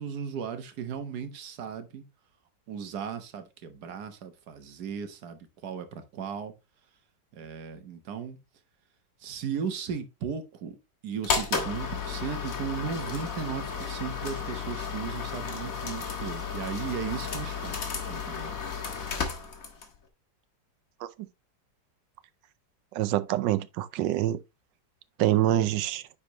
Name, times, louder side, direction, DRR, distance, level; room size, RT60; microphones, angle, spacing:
voice 1, 0.0-2.0 2.7-6.5 7.3-8.4 9.2-10.8 11.0-18.5, right 7 dB, 65° right, 1.6 m, -36 dB
sound 1, 11.2-20.0, left 5 dB, 50° left, 1.8 m, -33 dB
voice 2, 22.9-24.4 25.2-26.0, right 13 dB, 85° right, 1.3 m, -25 dB
9.7 x 4.2 x 3.0 m
omnidirectional pair, 1.9 m